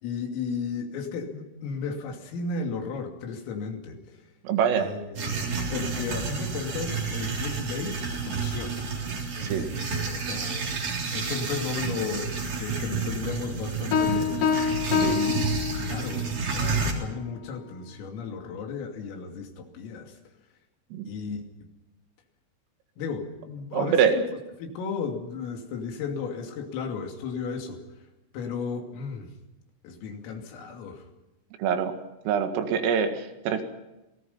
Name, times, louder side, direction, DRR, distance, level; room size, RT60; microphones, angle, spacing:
voice 1, 0.0-4.2 4.8-8.9 9.3-10.7 11.1-14.4 15.1-20.1 21.1-21.4 23.0-24.2 24.6-27.8 28.3-29.3 29.8-31.0, left 5 dB, 85° left, 3 dB, 5.4 m, -34 dB
voice 2, 4.4-4.9 9.5-9.7 15.0-15.2 20.9-21.1 23.7-24.2 31.6-32.0 32.3-33.6, right 7 dB, 80° right, 6 dB, 4.5 m, -24 dB
sound 1, 5.2-16.9, right 4 dB, 45° right, 4.9 m, -30 dB
sound 2, 13.9-16.3, left 7 dB, 60° left, 5.3 m, -26 dB
27.5 x 19.0 x 5.6 m, 0.99 s
omnidirectional pair, 5.8 m